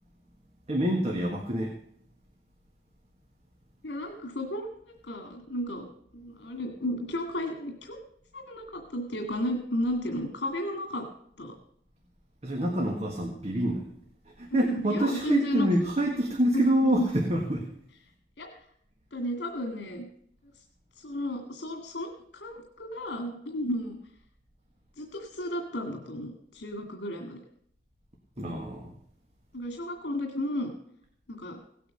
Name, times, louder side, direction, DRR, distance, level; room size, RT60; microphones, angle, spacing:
voice 1, 0.7-1.8 12.4-13.9 14.3-17.7 28.4-28.9, right 1 dB, 40° right, 1 dB, 1.7 m, -27 dB
voice 2, 3.8-4.7 5.0-5.9 6.1-8.0 8.3-11.1 11.4-11.5 14.5-15.7 16.5-17.1 18.4-18.5 19.1-20.0 21.0-24.0 25.0-27.4 29.5-30.7 31.3-31.6, left 1 dB, 75° left, 3 dB, 2.1 m, -33 dB
17.0 x 8.5 x 6.5 m, 0.66 s
head